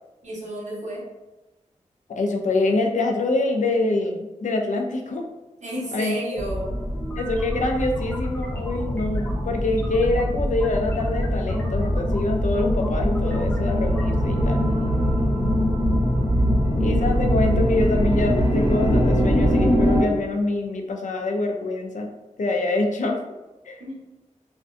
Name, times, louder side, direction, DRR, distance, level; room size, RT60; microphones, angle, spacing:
voice 1, 0.2-1.0 5.6-6.7 23.8-24.0, equal, 65° right, -5 dB, 0.9 m, -31 dB
voice 2, 2.1-5.2 5.9-6.4 7.2-14.6 16.8-22.1 22.4-23.2 23.7-23.8, left 2 dB, 75° left, 3 dB, 0.4 m, -25 dB
sound 1, 6.4-20.0, equal, 55° left, 0.9 m, -23 dB
sound 2, 6.9-14.1, left 1 dB, 15° left, 0.6 m, -31 dB
2.5 x 2.2 x 2.5 m, 1.1 s
wide cardioid pair, 90°, 13 cm